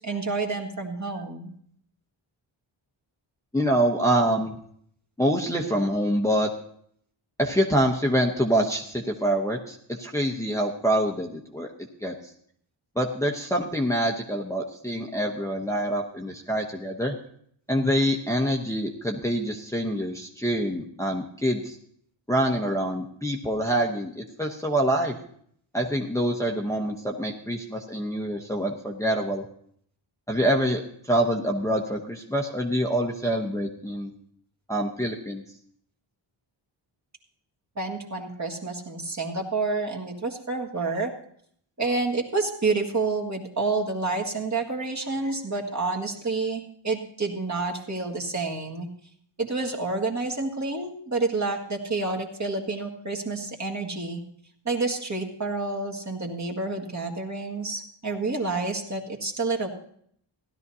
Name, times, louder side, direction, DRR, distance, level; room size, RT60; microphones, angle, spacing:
voice 1, 0.0-1.5 37.7-41.1 41.8-48.9 49.4-54.2 54.6-59.7, right 3 dB, 35° right, 0 dB, 1.8 m, -29 dB
voice 2, 3.5-4.5 5.2-6.5 7.4-11.7 12.0-12.1 13.0-17.1 17.7-21.8 22.3-25.2 25.7-29.4 30.3-30.8 31.1-34.1 34.7-35.4, right 1 dB, 5° left, -1 dB, 0.9 m, -25 dB
16.5 x 12.0 x 2.8 m, 0.64 s
wide cardioid pair, 105°, 49 cm